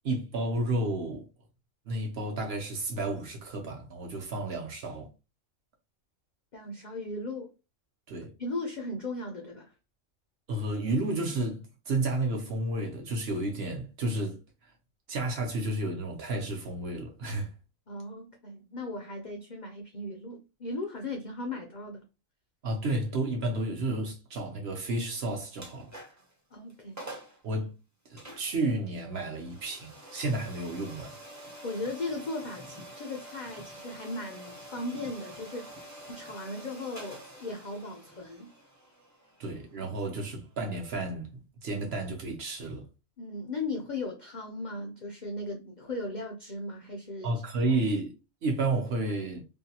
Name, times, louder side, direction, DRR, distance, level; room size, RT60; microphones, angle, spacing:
voice 1, 0.0-1.3 1.9-5.1 8.1-8.3 10.5-14.7 15.1-17.5 22.6-25.9 27.4-27.7 28.1-31.1 39.4-42.9 47.2-48.1 48.4-49.4, right 2 dB, 60° right, 0.8 m, -31 dB
voice 2, 6.5-7.5 8.4-9.7 17.9-22.0 26.5-27.1 31.6-35.7 36.1-38.5 43.2-47.3 47.7-47.8, left 2 dB, 65° left, 0.4 m, -37 dB
sound 1, 25.5-26.3 26.7-26.8 27.0-27.4 28.2-40.9, right 1 dB, 20° right, 0.4 m, -47 dB
2.6 x 2.2 x 2.7 m
omnidirectional pair, 1.4 m